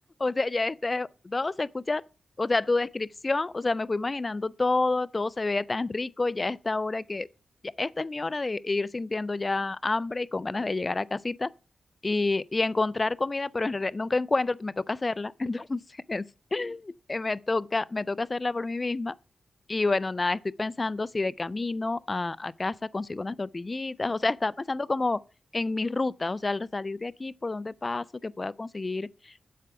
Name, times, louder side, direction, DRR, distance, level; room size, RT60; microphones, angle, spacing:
voice 1, 0.2-2.0 2.4-7.3 7.6-11.5 12.0-16.3 16.5-19.1 19.7-25.2 25.5-29.4, left 3 dB, 35° left, 0.3 m, -29 dB
7.5 x 4.7 x 6.8 m
cardioid pair, 70°, 0 cm